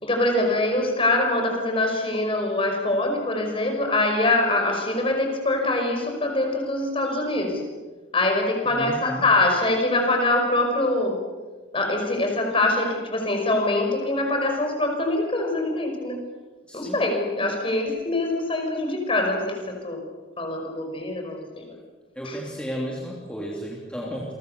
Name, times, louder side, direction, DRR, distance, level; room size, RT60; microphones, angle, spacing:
voice 1, 0.0-7.6 8.1-11.2 11.7-16.2 16.7-20.0 20.4-21.7 22.2-22.4, left 2 dB, 30° left, 3 dB, 5.7 m, -24 dB
voice 2, 8.6-9.2 16.7-17.0 22.1-24.3, equal, 5° left, -3 dB, 3.2 m, -33 dB
29.0 x 23.0 x 6.9 m, 1.4 s
head